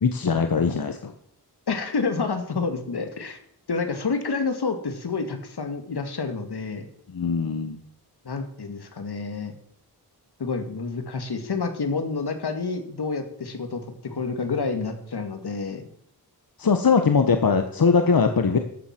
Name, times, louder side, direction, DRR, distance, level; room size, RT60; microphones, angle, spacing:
voice 1, 0.0-1.1 7.1-7.8 16.6-18.6, left 5 dB, 60° left, 7 dB, 1.2 m, -21 dB
voice 2, 1.7-3.4 3.7-6.9 8.2-9.5 10.4-15.9, left 4 dB, 75° left, 7 dB, 2.1 m, -29 dB
13.5 x 7.5 x 7.6 m, 0.68 s
wide cardioid pair, 75°, 39 cm